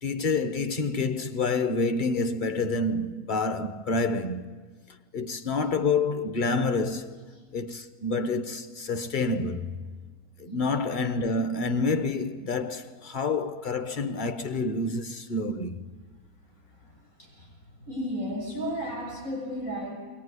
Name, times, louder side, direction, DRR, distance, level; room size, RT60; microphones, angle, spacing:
voice 1, 0.0-4.5 5.1-7.2 7.5-9.7 10.4-15.8, left 3 dB, 40° left, 0.9 m, -28 dB
voice 2, 17.8-20.0, equal, 70° left, 7.0 m, -33 dB
21.5 x 18.5 x 9.6 m
omnidirectional pair, 1.6 m